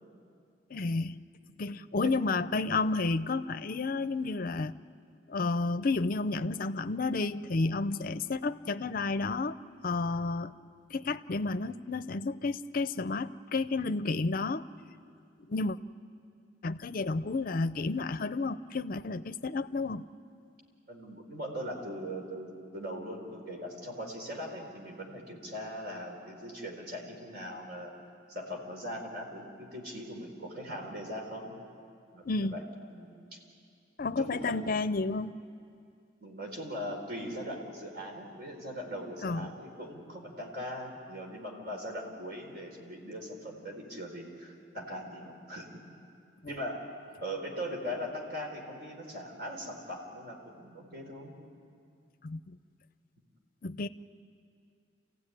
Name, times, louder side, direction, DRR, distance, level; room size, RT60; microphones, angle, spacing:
voice 1, 0.7-1.2 1.6-4.7 5.3-9.6 9.8-10.5 10.9-14.7 15.5-15.8 16.6-20.0 32.2-32.6 34.0-35.4 39.2-39.5 46.4-46.5 52.2-52.4 53.6-53.9, left 3 dB, 50° left, 13 dB, 0.6 m, -31 dB
voice 2, 1.6-2.1 20.9-27.9 28.3-31.6 32.1-33.4 34.2-34.6 36.2-45.8 46.5-46.9 47.2-51.3, equal, 60° right, 1 dB, 4.2 m, -40 dB
28.0 x 16.0 x 10.0 m, 2.4 s
head